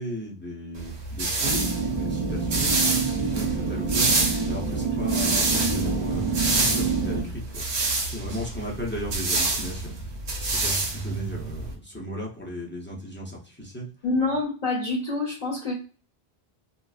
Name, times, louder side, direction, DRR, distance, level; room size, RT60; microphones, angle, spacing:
voice 1, 0.0-2.7 3.1-4.1 4.4-7.6 8.0-9.9 10.4-13.9, equal, 15° left, -3 dB, 0.4 m, -36 dB
sound 1, 0.8-11.7, right 3 dB, 85° right, 1.0 m, -27 dB
sound 2, 1.4-7.2, right 4 dB, 45° right, 0.7 m, -27 dB
voice 2, 14.0-15.7, left 3 dB, 45° left, -4 dB, 0.8 m, -26 dB
2.4 x 2.1 x 2.3 m, 0.36 s
omnidirectional pair, 1.1 m